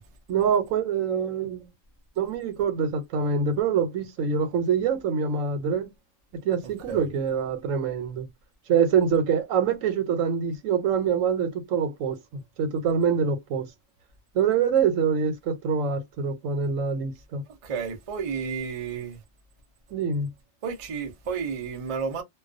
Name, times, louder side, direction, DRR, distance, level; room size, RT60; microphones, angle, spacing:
voice 1, 0.3-1.7 2.2-5.9 6.4-8.3 8.7-13.7 14.3-17.4 19.9-20.3, right 6 dB, 90° right, 1.1 m, -25 dB
voice 2, 17.6-19.2 20.6-22.2, right 6 dB, 50° right, 0.4 m, -31 dB
2.3 x 2.2 x 2.4 m
omnidirectional pair, 1.3 m